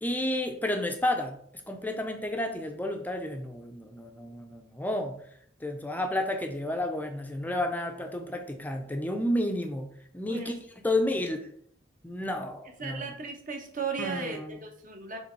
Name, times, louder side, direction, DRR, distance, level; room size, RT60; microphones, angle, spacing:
voice 1, 0.0-1.4 1.7-5.2 5.6-9.9 10.1-10.5 10.8-11.5 12.0-13.1 14.0-14.6, left 1 dB, 10° left, 5 dB, 0.6 m, -31 dB
voice 2, 12.8-15.2, right 5 dB, 45° right, 2 dB, 1.2 m, -36 dB
6.7 x 3.3 x 4.6 m, 0.64 s
head